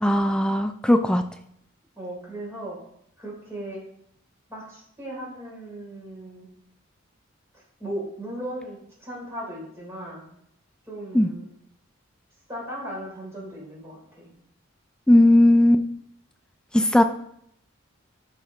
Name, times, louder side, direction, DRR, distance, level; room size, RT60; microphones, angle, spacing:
voice 1, 0.0-1.2 11.1-11.3 15.1-15.8 16.7-17.0, left 1 dB, 5° left, 7 dB, 0.4 m, -17 dB
voice 2, 2.0-2.8 3.2-3.8 4.5-6.5 7.8-10.3 10.9-11.5 12.5-14.3, right 1 dB, 15° right, -5 dB, 3.7 m, -37 dB
11.5 x 5.9 x 3.2 m, 0.71 s
head